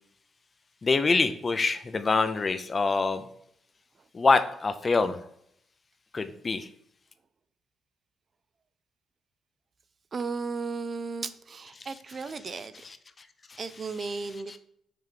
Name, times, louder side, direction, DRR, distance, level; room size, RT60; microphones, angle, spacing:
voice 1, 0.8-3.3 4.1-5.2 6.1-6.7 11.7-14.2, left 4 dB, 30° left, 10 dB, 0.6 m, -27 dB
voice 2, 10.1-12.7 13.6-14.6, right 4 dB, 40° right, 13 dB, 0.5 m, -35 dB
5.9 x 3.1 x 5.1 m, 0.72 s
cardioid pair, 90°, 0 cm